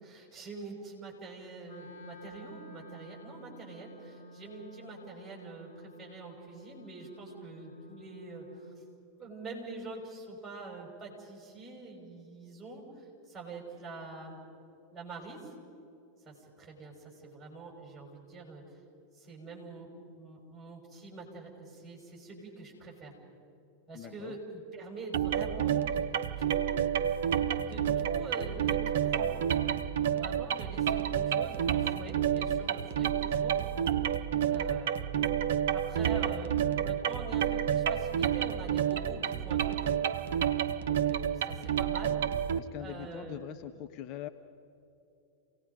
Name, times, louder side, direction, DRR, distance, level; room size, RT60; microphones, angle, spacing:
voice 1, 0.0-8.8 9.2-14.4 14.9-15.5 16.3-18.8 19.1-19.9 20.2-23.1 23.9-26.1 26.4-26.7 27.5-29.4 30.1-33.6 34.5-35.2 35.7-40.0 40.9-42.2 42.8-43.4, right 3 dB, 10° right, -1 dB, 5.9 m, -45 dB
Wind instrument woodwind instrument, 1.6-8.8, equal, 55° left, 3.3 m, -52 dB
voice 2, 23.9-24.3 42.5-44.3, left 11 dB, 40° left, 9 dB, 0.6 m, -42 dB
sound 1, 25.1-42.6, right 9 dB, 60° right, 0.7 m, -29 dB
28.5 x 18.5 x 5.3 m, 2.8 s
figure-of-eight pair, 90°, 0 cm